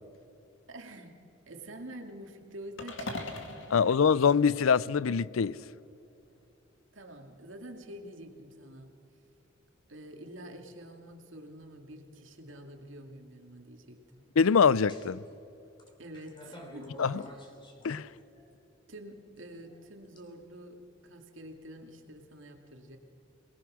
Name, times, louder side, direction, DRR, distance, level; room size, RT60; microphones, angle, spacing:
voice 1, 0.7-3.5 6.9-9.0 9.9-14.3 16.0-17.5 18.9-23.0, right 1 dB, 70° right, 2.5 m, -47 dB
sound 1, 2.8-5.1, left 2 dB, 65° left, 2.5 m, -42 dB
voice 2, 3.7-5.6 14.4-15.2 17.0-17.2 17.8-18.1, left 6 dB, 85° left, 0.5 m, -24 dB
sound 2, 14.9-15.3 15.8-18.5 19.4-20.2, left 1 dB, 25° left, 3.2 m, -49 dB
26.5 x 20.0 x 6.3 m
head